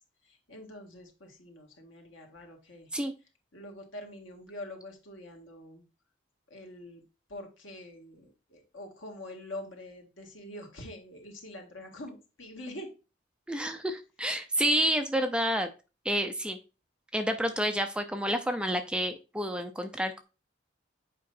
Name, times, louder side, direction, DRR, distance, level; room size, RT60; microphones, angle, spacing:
voice 1, 0.2-2.9 3.5-5.8 6.5-7.0 7.3-12.9, left 1 dB, 80° left, 2 dB, 1.8 m, -45 dB
voice 2, 13.5-15.7 16.0-16.6 17.1-20.2, right 1 dB, 5° right, 7 dB, 0.5 m, -29 dB
7.5 x 5.0 x 2.6 m, 0.30 s
head